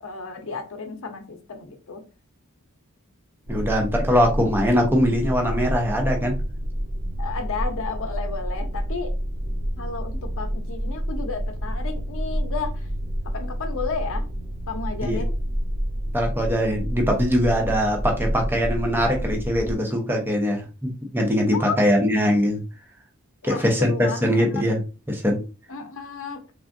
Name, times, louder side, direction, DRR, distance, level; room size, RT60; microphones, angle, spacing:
voice 1, 0.0-2.0 7.2-9.1 9.8-12.9 13.3-14.2 14.7-15.3 21.5-21.8 23.4-24.6 25.7-26.4, left 4 dB, 65° left, 5 dB, 0.7 m, -32 dB
voice 2, 3.5-6.3 15.0-15.2 16.1-22.6 23.4-24.8 25.1-25.4, equal, 10° right, 1 dB, 0.7 m, -22 dB
sound 1, 3.5-19.7, equal, 60° right, 1.1 m, -29 dB
3.5 x 2.4 x 2.5 m, 0.31 s
head